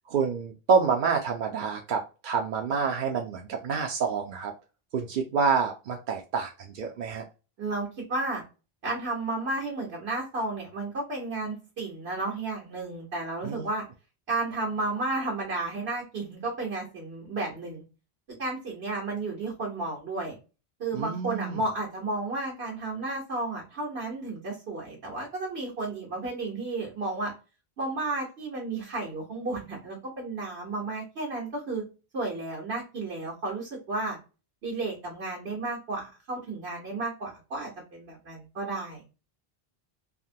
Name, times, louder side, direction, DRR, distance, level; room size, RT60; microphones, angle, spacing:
voice 1, 0.1-4.5 4.9-7.2 13.4-13.7 20.9-21.6, right 5 dB, 60° right, 0.6 m, -27 dB
voice 2, 7.6-8.4 8.8-13.8 14.3-17.8 18.4-20.4 20.8-27.3 27.8-31.8 32.1-34.2 34.6-39.1, right 2 dB, 90° right, 1.5 m, -32 dB
3.5 x 2.1 x 2.6 m
omnidirectional pair, 1.0 m